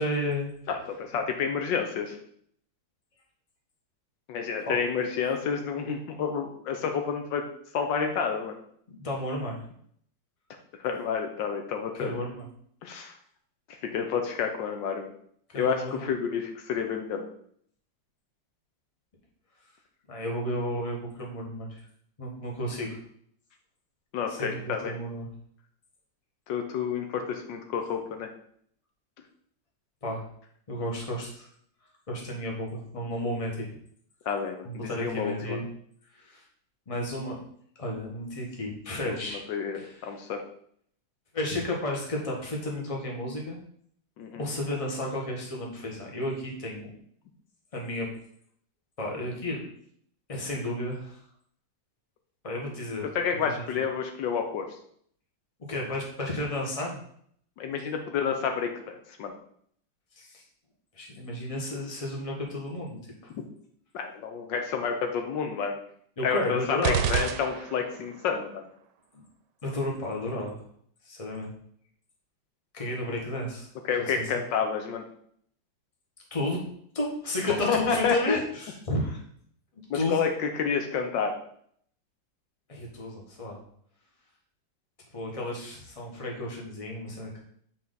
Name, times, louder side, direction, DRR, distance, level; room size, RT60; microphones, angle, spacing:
voice 1, 0.0-0.5 4.6-4.8 8.9-9.6 11.9-12.5 15.5-16.1 20.1-21.8 22.2-23.0 24.3-25.3 30.0-30.2 30.7-31.5 32.1-33.7 34.6-35.7 36.1-36.4 36.9-37.4 37.8-39.4 39.7-40.3 41.3-43.6 44.4-46.9 47.7-48.1 49.0-49.6 50.3-51.2 52.4-53.1 55.7-57.0 60.2-60.3 60.9-63.3 66.2-67.3 69.1-69.2 69.6-70.6 71.0-71.5 72.7-73.7 74.1-74.3 76.3-76.6 76.9-79.2 79.9-80.2 82.7-83.6 85.1-87.4, left 1 dB, 20° left, -1 dB, 1.3 m, -32 dB
voice 2, 0.7-2.2 4.3-7.4 7.7-8.6 10.8-12.1 12.8-13.1 13.8-15.1 15.6-17.2 24.1-24.9 26.5-28.3 34.3-35.6 39.0-40.4 44.2-44.5 53.1-54.7 57.6-59.3 63.9-65.8 66.2-68.6 73.9-75.0 77.7-78.4 79.9-81.4, left 6 dB, 75° left, 5 dB, 1.4 m, -29 dB
sound 1, 66.8-68.1, right 8 dB, 70° right, 1.1 m, -29 dB
7.2 x 4.3 x 3.9 m, 0.64 s
omnidirectional pair, 2.0 m